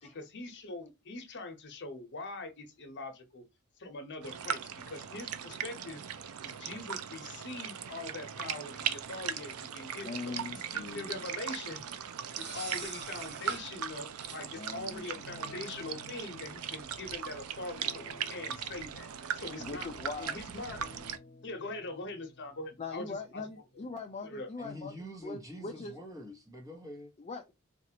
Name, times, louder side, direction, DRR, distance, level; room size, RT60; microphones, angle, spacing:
voice 1, 0.0-3.4 3.8-6.0 6.4-11.8 12.3-19.9 20.2-20.8 21.4-23.5 24.2-24.5, left 2 dB, 55° left, 0.9 m, -43 dB
sound 1, 4.2-21.2, right 8 dB, 75° right, 0.5 m, -39 dB
voice 2, 10.0-11.2 14.5-15.3 19.6-20.4 22.8-24.9 25.2-25.9 27.2-27.5, left 4 dB, 30° left, 0.4 m, -41 dB
sound 2, 10.0-10.7 12.2-13.7 14.2-14.4, right 5 dB, 50° right, 0.8 m, -45 dB
Guitar, 15.2-16.5 17.7-18.6 18.9-20.1 20.7-24.2, left 2 dB, 80° left, 1.0 m, -55 dB
voice 3, 24.6-27.1, left 1 dB, 15° right, 1.0 m, -45 dB
4.2 x 2.4 x 2.8 m
head